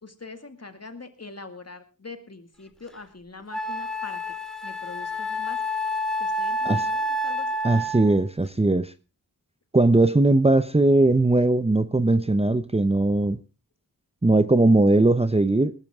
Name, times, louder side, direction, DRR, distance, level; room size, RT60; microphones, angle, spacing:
voice 1, 0.0-4.3 4.6-5.6 6.2-7.5, left 3 dB, 40° left, 8 dB, 2.2 m, -43 dB
Wind instrument woodwind instrument, 2.9-3.0 3.5-8.2, left 1 dB, ahead, 2.3 m, -28 dB
voice 2, 7.6-8.9 9.7-13.4 14.2-15.7, right 2 dB, 15° right, 12 dB, 0.7 m, -19 dB
20.0 x 12.5 x 3.6 m, 0.32 s
wide cardioid pair, 65°, 37 cm